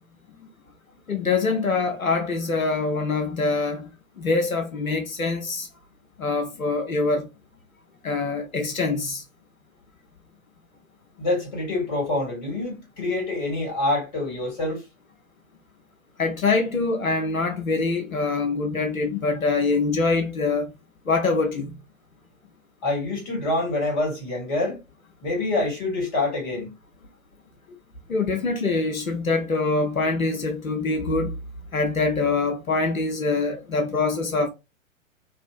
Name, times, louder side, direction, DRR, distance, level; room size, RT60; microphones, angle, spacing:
voice 1, 1.1-3.9 4.2-5.7 6.2-7.3 8.0-9.2 16.2-20.7 21.1-21.7 28.1-31.4 31.7-34.5, left 3 dB, 90° left, 0.6 m, -24 dB
voice 2, 11.2-14.8 22.8-24.8 25.2-26.7, left 2 dB, 35° left, 1.5 m, -26 dB
2.7 x 2.5 x 2.3 m
figure-of-eight pair, 120°, 41 cm